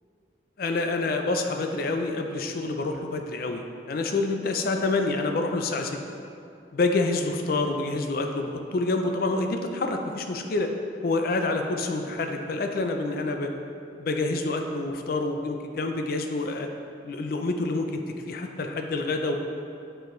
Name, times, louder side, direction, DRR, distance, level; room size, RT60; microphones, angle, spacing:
voice 1, 0.6-6.0 6.7-10.7 11.0-13.5 14.0-16.7 17.0-18.0 18.3-19.4, left 3 dB, 50° left, 4 dB, 0.4 m, -27 dB
7.6 x 4.4 x 3.1 m, 2.5 s
head